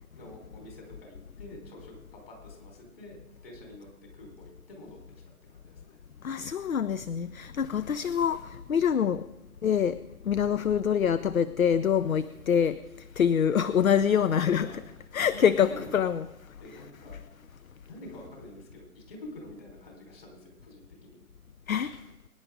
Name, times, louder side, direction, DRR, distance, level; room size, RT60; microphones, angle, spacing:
voice 1, 0.1-3.9 4.1-5.0 5.3-6.0 10.4-10.7 13.9-14.1 14.5-15.0 15.3-15.9 16.6-17.3 17.9-21.2, left 1 dB, 40° left, 1 dB, 4.3 m, -47 dB
voice 2, 6.2-9.2 9.6-10.0 10.3-12.8 13.2-14.8 15.1-16.3 21.7-22.0, left 8 dB, 65° left, 15 dB, 0.6 m, -25 dB
23.0 x 10.0 x 3.8 m, 0.96 s
figure-of-eight pair, 150°, 44 cm